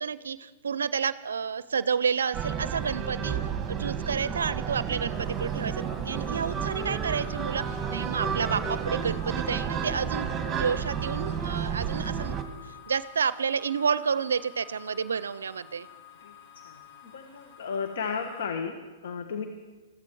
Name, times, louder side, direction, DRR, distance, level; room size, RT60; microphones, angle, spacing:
voice 1, 0.0-3.4 3.7-12.3 12.6-15.9, right 6 dB, 80° right, 16 dB, 0.4 m, -30 dB
sound 1, 2.3-12.4, right 7 dB, 20° right, 1.8 m, -31 dB
sound 2, 5.1-18.4, left 11 dB, 50° left, 5.1 m, -49 dB
voice 2, 15.9-19.5, left 6 dB, 65° left, 5 dB, 1.4 m, -35 dB
21.0 x 14.5 x 4.7 m, 1.3 s
hypercardioid pair, 115°, 0 cm